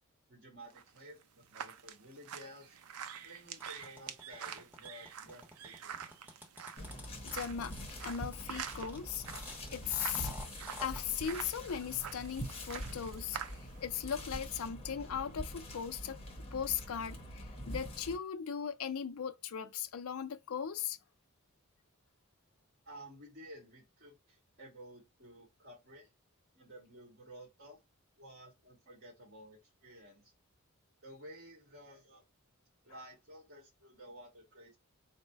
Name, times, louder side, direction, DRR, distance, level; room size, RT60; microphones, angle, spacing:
voice 1, 0.3-2.8 3.2-6.1 22.8-26.1 26.5-27.8 28.2-30.3 31.0-32.2 32.8-34.8, right 1 dB, 50° right, 1.7 m, -53 dB
sound 1, 0.7-13.9, right 8 dB, 90° right, 0.5 m, -47 dB
sound 2, 3.6-11.0, left 1 dB, 10° right, 1.1 m, -50 dB
sound 3, 6.8-18.2, equal, 25° left, 0.8 m, -45 dB
voice 2, 7.2-7.8 8.0-9.2 9.7-10.3 10.8-16.2 16.5-21.0, left 8 dB, 75° left, 0.5 m, -38 dB
4.0 x 2.1 x 4.5 m
head